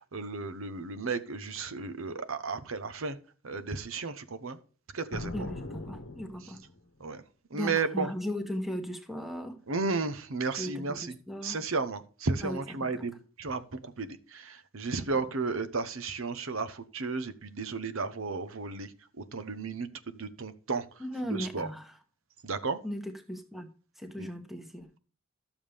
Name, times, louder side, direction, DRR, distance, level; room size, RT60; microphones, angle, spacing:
voice 1, 0.0-3.2 3.4-4.6 4.9-5.5 7.0-7.2 7.5-8.1 9.7-11.1 11.4-21.0 21.3-21.7 22.4-22.8 24.2-24.3, right 4 dB, 75° right, 12 dB, 0.9 m, -34 dB
sound 1, 5.1-6.9, left 1 dB, 65° left, 1.0 m, -40 dB
voice 2, 5.3-6.6 7.5-9.6 10.6-11.6 12.4-13.1 14.9-15.3 21.0-22.0 22.8-23.7 24.0-25.0, equal, ahead, 6 dB, 1.1 m, -37 dB
12.5 x 7.1 x 3.4 m, 0.38 s
head